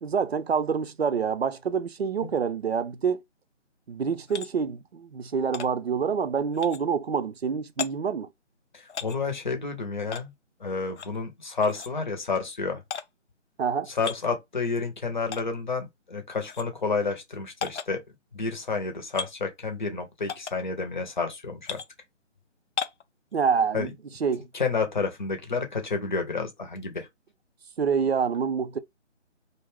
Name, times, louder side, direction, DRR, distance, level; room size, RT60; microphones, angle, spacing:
voice 1, 0.0-3.2 3.9-8.3 13.6-13.9 23.3-23.9 24.2-24.5 27.8-28.8, right 6 dB, 60° right, 0.5 m, -27 dB
sound 1, 4.3-4.5 5.5-5.7 6.5-6.8 7.8-7.9 8.9-9.2 10.1-10.2 10.9-11.2 11.6-11.9 12.9-13.0 13.9-14.2 15.3-15.4 16.4-16.7 17.6-17.9 19.1-19.3 20.3-20.6 21.6-21.9 22.8-23.0, left 6 dB, 70° left, 0.5 m, -34 dB
voice 2, 8.7-10.3 10.6-12.8 13.9-18.0 18.3-21.8 23.7-23.9 24.5-27.1, left 4 dB, 40° left, 0.7 m, -30 dB
2.5 x 2.2 x 3.2 m
figure-of-eight pair, 150°, 36 cm